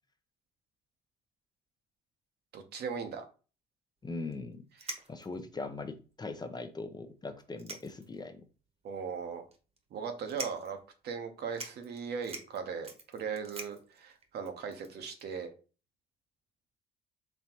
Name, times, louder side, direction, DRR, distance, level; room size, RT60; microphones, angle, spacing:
voice 1, 2.5-3.3 4.9-5.0 8.8-9.4 9.9-10.8 11.0-15.5, right 6 dB, 65° right, 5 dB, 0.9 m, -38 dB
voice 2, 4.0-4.6 5.1-8.5, left 3 dB, 25° left, 8 dB, 0.6 m, -40 dB
sound 1, 4.3-4.4 4.8-5.4 6.1-6.2 6.5-6.6 7.4-8.3 8.7-8.8 9.5-9.8 10.3-10.8 11.2-11.3 11.5-15.2, right 3 dB, 35° right, 1.1 m, -45 dB
4.2 x 3.2 x 2.9 m, 0.35 s
supercardioid pair, 70°, 18 cm